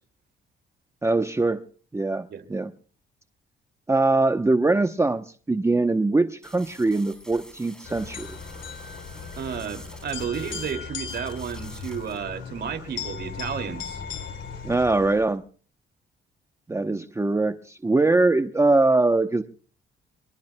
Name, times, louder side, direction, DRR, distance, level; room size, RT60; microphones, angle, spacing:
voice 1, 1.0-1.6 1.9-2.7 3.9-8.4 14.6-15.4 16.7-19.4, right 2 dB, 15° right, 8 dB, 0.8 m, -22 dB
sound 1, 6.4-10.7 11.0-12.2, equal, 5° left, 3.4 m, -47 dB
sound 2, 7.8-15.4, left 6 dB, 70° left, 3.0 m, -37 dB
voice 2, 9.4-14.0, right 7 dB, 55° right, 8 dB, 2.5 m, -32 dB
25.0 x 23.0 x 2.2 m, 0.42 s
cardioid pair, 90°, 20 cm